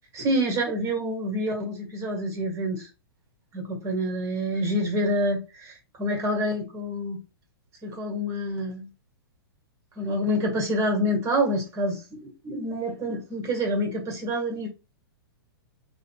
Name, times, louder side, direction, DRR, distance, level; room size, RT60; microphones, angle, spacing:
voice 1, 0.1-2.9 3.5-7.2 7.8-8.9 10.0-14.7, equal, 25° right, 1.8 m, -27 dB
4.9 x 2.8 x 2.9 m
hypercardioid pair, 125°, 13 cm